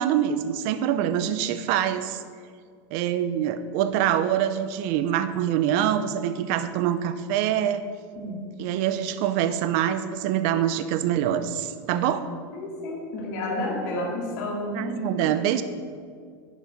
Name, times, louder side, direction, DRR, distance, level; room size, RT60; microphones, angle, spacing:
voice 1, 0.0-2.2 2.9-7.8 8.6-12.3 14.7-15.6, right 10 dB, 40° right, 11 dB, 0.5 m, -25 dB
voice 2, 12.5-15.0, left 1 dB, 50° left, -3 dB, 2.3 m, -31 dB
10.5 x 5.1 x 5.1 m, 2.1 s
supercardioid pair, 175°, 12 cm